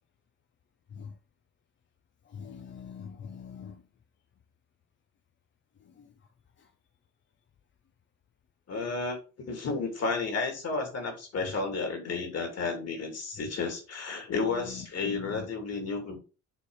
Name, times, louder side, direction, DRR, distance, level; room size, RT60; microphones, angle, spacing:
voice 1, 2.3-3.8 15.1-15.5, left 7 dB, 40° left, 0.6 m, -42 dB
voice 2, 8.7-9.2 9.5-16.2, left 4 dB, 55° left, 2.5 m, -32 dB
6.9 x 3.3 x 4.8 m
cardioid pair, 90°, 30 cm